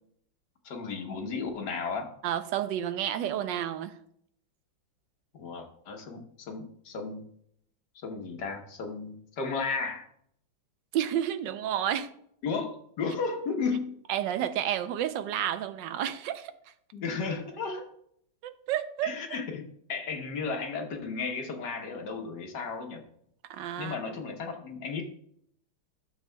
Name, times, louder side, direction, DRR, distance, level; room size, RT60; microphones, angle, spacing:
voice 1, 0.7-2.1 5.3-7.2 8.0-10.1 12.4-14.0 16.9-17.9 19.0-23.0 23.8-25.0, left 4 dB, 65° left, 3 dB, 1.6 m, -34 dB
voice 2, 2.2-4.0 10.9-12.1 14.1-16.5 18.4-19.1 23.5-24.0, right 10 dB, 75° right, 10 dB, 1.3 m, -30 dB
12.0 x 7.1 x 2.2 m, 0.69 s
omnidirectional pair, 2.1 m